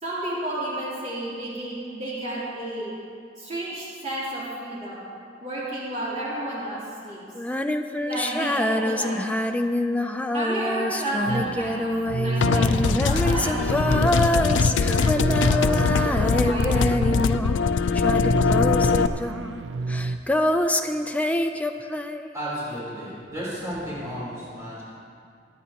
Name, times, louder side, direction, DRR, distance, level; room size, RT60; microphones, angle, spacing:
voice 1, 0.0-2.9 3.4-5.0 5.4-7.2 8.1-9.2 10.3-17.0, right 1 dB, 40° right, -9 dB, 3.1 m, -32 dB
Female singing, 7.3-17.7 17.9-22.4, left 1 dB, 10° left, 0.4 m, -26 dB
sound 1, 11.3-20.2, right 3 dB, 70° right, 0.4 m, -30 dB
sound 2, 12.4-19.1, left 5 dB, 70° left, 0.4 m, -22 dB
voice 2, 22.3-24.8, equal, 15° right, -9 dB, 3.6 m, -33 dB
22.5 x 9.6 x 2.9 m, 2.4 s
head